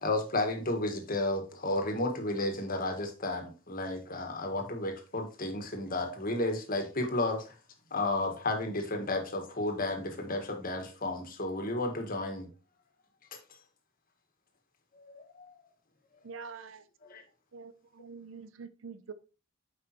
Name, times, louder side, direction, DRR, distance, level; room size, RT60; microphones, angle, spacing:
voice 1, 0.0-7.5 7.9-12.5 14.9-15.6 17.0-17.2, left 2 dB, 45° left, 1.6 m, -32 dB
voice 2, 16.2-16.8 17.5-19.1, right 5 dB, 75° right, 0.6 m, -45 dB
8.1 x 5.4 x 3.0 m
head